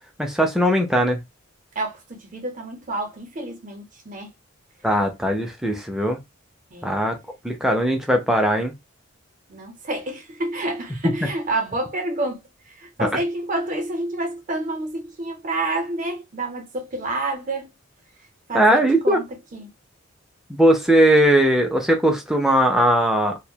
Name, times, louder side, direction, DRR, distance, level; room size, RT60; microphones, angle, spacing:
voice 1, 0.2-1.2 4.8-6.2 6.8-7.2 7.4-8.7 13.0-13.2 18.5-19.2 20.5-23.4, right 1 dB, ahead, 0.4 m, -19 dB
voice 2, 1.8-4.3 6.7-6.9 9.5-12.4 12.8-17.7 18.5-19.2 19.5-19.7, right 2 dB, 40° right, 0.6 m, -28 dB
2.2 x 2.1 x 2.7 m
head